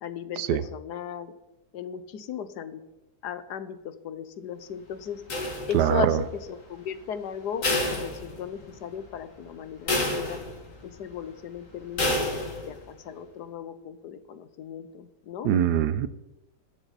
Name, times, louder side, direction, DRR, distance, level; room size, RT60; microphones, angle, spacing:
voice 1, 0.0-1.3 1.7-2.8 3.2-5.2 5.7-10.4 10.8-15.5, left 8 dB, 75° left, 12 dB, 1.4 m, -36 dB
sound 1, 5.3-6.1 7.6-8.8 9.2-9.3 9.9-10.8 12.0-12.8, left 1 dB, 50° left, 2.6 m, -28 dB
voice 2, 5.7-6.2 15.4-16.1, right 10 dB, 75° right, 14 dB, 1.2 m, -23 dB
21.0 x 7.1 x 4.1 m, 0.96 s
omnidirectional pair, 1.8 m